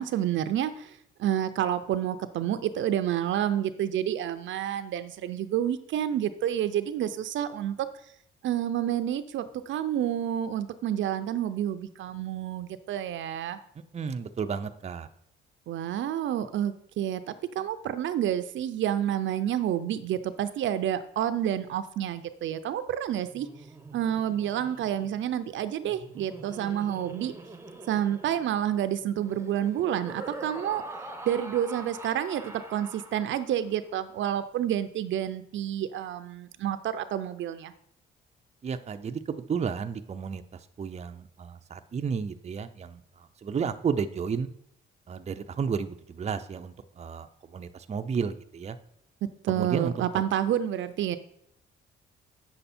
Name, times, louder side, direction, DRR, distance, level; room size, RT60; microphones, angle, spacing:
voice 1, 0.0-7.9 8.4-13.6 15.7-23.5 23.9-27.3 27.9-30.8 31.3-37.7 49.4-51.2, right 10 dB, 70° right, 11 dB, 0.6 m, -29 dB
voice 2, 13.9-15.1 38.6-40.4 40.8-44.5 45.1-48.8 49.5-50.2, right 6 dB, 35° right, 8 dB, 0.6 m, -32 dB
Laughter, 23.2-33.7, right 2 dB, 15° right, 1.0 m, -44 dB
8.1 x 6.8 x 4.3 m, 0.69 s
cardioid pair, 90°, 20 cm